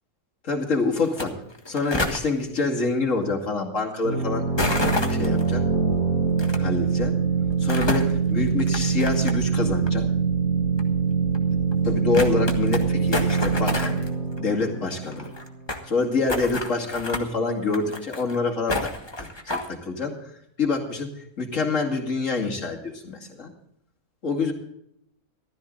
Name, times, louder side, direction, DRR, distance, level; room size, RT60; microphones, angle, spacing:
voice 1, 0.4-1.4 1.7-4.4 5.1-5.6 6.6-7.2 7.6-10.1 11.8-14.0 14.4-15.3 15.8-18.9 19.2-20.2 20.6-23.5 24.2-24.5, left 3 dB, 55° left, 0 dB, 2.7 m, -26 dB
sound 1, 1.0-1.2 1.5-2.2 4.6-5.4 6.4-6.6 7.5-8.1 8.6-9.6 9.9-10.0 10.8-10.9 11.3-11.4 11.7-11.8 12.1-12.8 13.1-14.1 14.4-14.5 14.6-14.7 14.9-15.8 16.3-17.2 17.7-18.4 18.7-19.7, left 2 dB, 15° left, 1.4 m, -28 dB
sound 2, 4.0-15.6, right 5 dB, 65° right, 2.6 m, -24 dB
14.5 x 13.0 x 3.9 m, 0.76 s
omnidirectional pair, 1.6 m